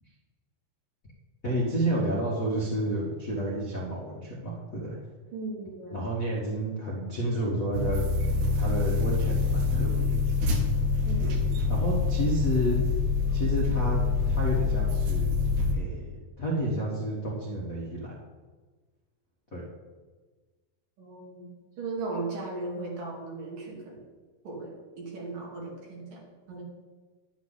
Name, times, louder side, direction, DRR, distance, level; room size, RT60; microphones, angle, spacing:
voice 1, 1.4-5.0 5.9-8.0 8.5-10.2 11.7-12.8 13.3-15.4 15.7-16.1 16.4-18.2 19.5-19.6, right 1 dB, 40° left, -7 dB, 1.2 m, -30 dB
voice 2, 5.3-6.0 11.0-11.6 21.0-24.0 24.4-26.2 26.5-26.6, right 3 dB, 60° right, -3 dB, 4.1 m, -37 dB
sound 1, 7.7-15.7, left 4 dB, 90° right, 3.6 m, -26 dB
11.5 x 9.9 x 4.1 m, 1.3 s
omnidirectional pair, 4.6 m